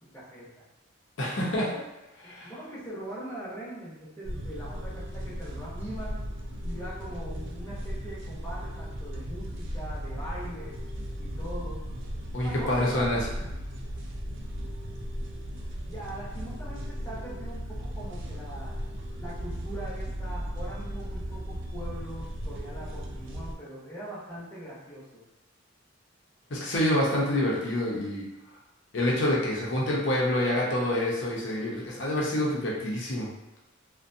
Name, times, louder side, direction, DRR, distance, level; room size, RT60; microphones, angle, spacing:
voice 1, 0.0-0.6 2.2-6.2 6.6-10.8 11.2-11.9 12.4-13.5 15.9-18.7 19.2-25.2, right 1 dB, 15° left, -8 dB, 0.8 m, -41 dB
voice 2, 1.2-1.8 2.2-2.5 12.3-13.3 26.5-28.2 28.9-33.3, left 1 dB, 65° left, -4 dB, 0.7 m, -27 dB
sound 1, 4.2-23.5, equal, 65° right, 0.4 m, -36 dB
2.5 x 2.2 x 2.6 m, 0.97 s
head